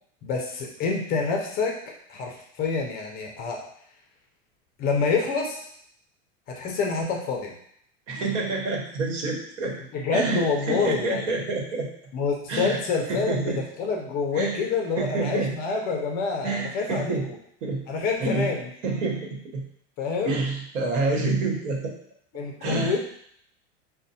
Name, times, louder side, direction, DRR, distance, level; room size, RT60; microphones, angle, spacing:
voice 1, 0.2-1.7 2.1-3.6 4.8-5.6 6.6-7.5 9.9-11.4 12.1-17.2 17.9-18.7 20.0-20.4 22.3-23.0, left 4 dB, 25° left, 1 dB, 0.4 m, -27 dB
voice 2, 8.1-9.8 10.1-11.9 12.5-12.8 13.1-13.6 14.3-14.6 15.0-15.5 16.4-17.3 17.6-17.8 18.2-18.5 18.8-19.6 20.2-21.9 22.6-22.9, right 3 dB, 85° right, 1 dB, 1.1 m, -27 dB
5.0 x 2.1 x 2.7 m, 0.67 s
supercardioid pair, 145°, 37 cm